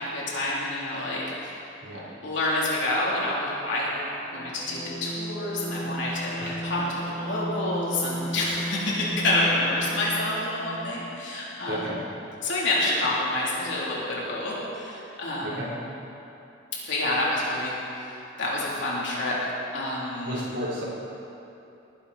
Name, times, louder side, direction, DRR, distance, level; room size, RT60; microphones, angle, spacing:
voice 1, 0.0-1.7 2.2-3.9 4.3-12.0 12.4-15.8 16.9-19.4 19.7-20.5, left 1 dB, 65° left, -6 dB, 3.5 m, -28 dB
sound 1, 4.2-11.1, right 1 dB, 85° left, 3.5 m, -35 dB
voice 2, 6.4-6.9 11.7-12.0 15.4-15.8 20.2-20.8, equal, 70° right, -7 dB, 3.8 m, -33 dB
19.5 x 10.5 x 4.3 m, 2.9 s
head